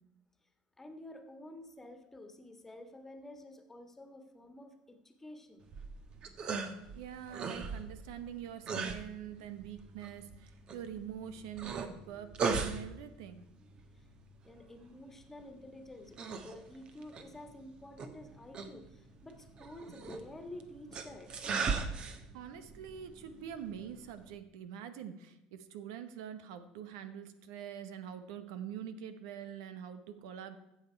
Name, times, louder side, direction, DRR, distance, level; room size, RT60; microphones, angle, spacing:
voice 1, 0.8-5.7 13.9-14.1 14.4-21.3, left 1 dB, 15° left, 6 dB, 1.6 m, -50 dB
sound 1, 5.6-24.3, right 5 dB, 40° right, 1.2 m, -40 dB
voice 2, 6.9-13.4 22.3-30.6, right 9 dB, 85° right, 10 dB, 1.0 m, -45 dB
14.0 x 7.3 x 4.6 m, 0.91 s
supercardioid pair, 105°, 2 cm